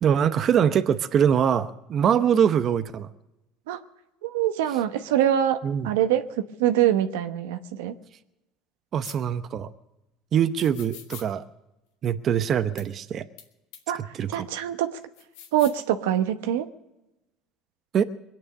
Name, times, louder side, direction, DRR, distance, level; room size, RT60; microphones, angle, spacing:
voice 1, 0.0-3.1 5.6-5.9 8.9-9.7 10.3-11.4 12.0-13.3 14.1-14.5 17.9-18.0, right 8 dB, 45° right, 10 dB, 0.8 m, -23 dB
voice 2, 4.2-5.6 5.8-7.9 13.9-14.0 14.3-14.9 15.5-16.7, right 11 dB, 85° right, 9 dB, 1.0 m, -24 dB
sound 1, 9.0-9.2 10.6-11.3 12.8-12.9 13.4-13.5 13.7-13.8 15.2-15.8, left 9 dB, 85° left, 1.9 m, -43 dB
22.0 x 9.1 x 6.6 m, 0.95 s
supercardioid pair, 95°, 0 cm